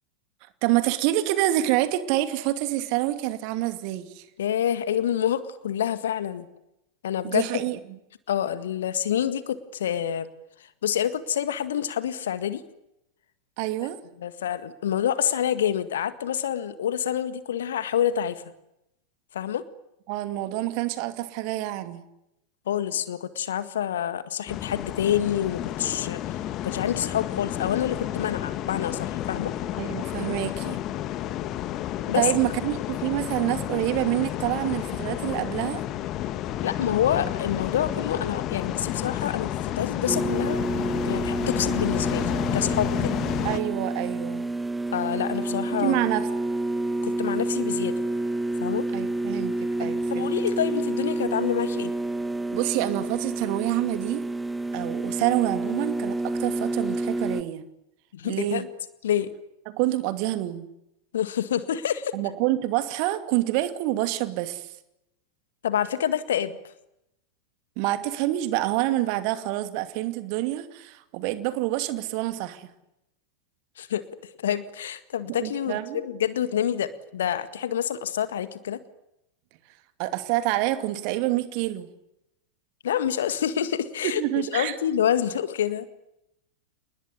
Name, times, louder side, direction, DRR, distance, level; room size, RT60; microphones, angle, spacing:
voice 1, 0.6-4.2 7.2-7.8 13.6-14.0 20.1-22.0 29.8-30.8 32.1-35.8 43.4-44.4 45.8-46.3 48.9-49.5 49.8-50.3 52.5-54.3 54.7-57.6 58.2-58.6 59.7-60.7 62.1-64.7 67.8-72.7 75.4-76.0 80.0-81.9 84.0-84.8, right 15 dB, 45° right, 10 dB, 2.6 m, -27 dB
voice 2, 4.4-6.5 7.0-7.6 8.3-10.3 10.6-12.6 13.8-13.9 14.2-18.4 19.3-19.7 22.7-29.5 32.1-32.3 36.6-40.6 41.0-43.1 44.9-46.0 47.0-47.9 48.6-48.9 49.8-51.9 58.1-58.7 59.0-59.3 61.1-62.1 65.6-66.6 73.8-78.8 82.8-85.9, left 10 dB, 60° left, 13 dB, 1.8 m, -27 dB
sound 1, 24.5-43.6, left 12 dB, 35° left, 1.7 m, -31 dB
sound 2, 40.1-57.4, right 2 dB, 5° right, 1.2 m, -29 dB
28.5 x 20.5 x 9.7 m, 0.86 s
figure-of-eight pair, 90°, 0 cm